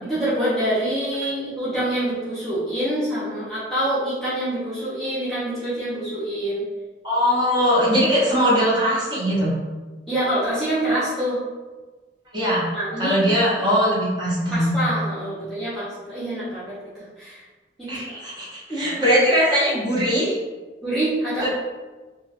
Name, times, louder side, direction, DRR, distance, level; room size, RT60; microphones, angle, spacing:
voice 1, 0.0-6.6 10.1-11.4 12.7-13.2 14.5-17.4 17.8-18.2 18.7-19.0 20.8-21.5, right 1 dB, ahead, -12 dB, 0.7 m, -26 dB
voice 2, 7.0-9.5 12.3-12.7 13.0-14.8 17.9-20.4 21.4-21.5, equal, 25° right, -9 dB, 1.0 m, -20 dB
2.4 x 2.3 x 3.2 m, 1.3 s
head